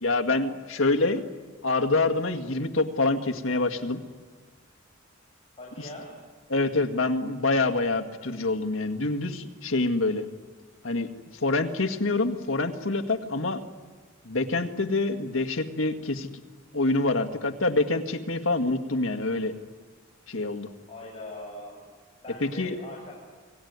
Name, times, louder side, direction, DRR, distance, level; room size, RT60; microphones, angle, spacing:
voice 1, 0.0-1.2 1.6-4.0 6.5-10.3 10.8-13.6 14.2-16.3 16.7-19.5 20.3-20.7 22.4-22.7, left 2 dB, 70° left, 5 dB, 2.0 m, -26 dB
voice 2, 5.6-6.1 20.9-21.8 22.2-23.1, left 1 dB, 30° left, -4 dB, 7.3 m, -41 dB
29.5 x 19.5 x 9.6 m, 1.4 s
head